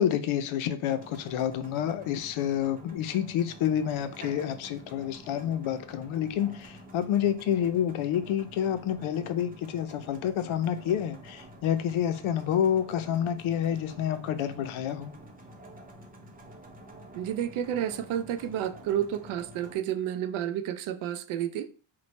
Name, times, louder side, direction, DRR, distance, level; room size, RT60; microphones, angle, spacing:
voice 1, 0.0-15.1, left 9 dB, 80° left, 0.5 m, -28 dB
sound 1, 0.9-19.8, right 1 dB, 20° right, 0.5 m, -49 dB
voice 2, 17.1-21.7, right 10 dB, 90° right, 0.5 m, -31 dB
3.1 x 2.1 x 4.1 m
cardioid pair, 135°, 48 cm